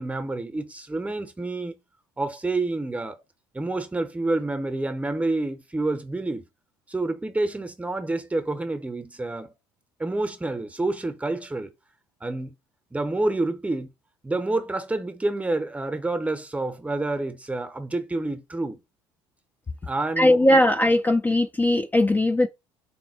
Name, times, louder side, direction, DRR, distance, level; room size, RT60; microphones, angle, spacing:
voice 1, 0.0-1.7 2.2-3.2 3.5-6.4 6.9-9.5 10.0-11.7 12.2-12.5 12.9-13.9 14.2-18.8 19.9-20.6, right 2 dB, 15° right, 0.9 m, -28 dB
voice 2, 20.2-22.5, left 1 dB, 15° left, 0.5 m, -19 dB
4.3 x 2.1 x 4.2 m
hypercardioid pair, 70°, 11 cm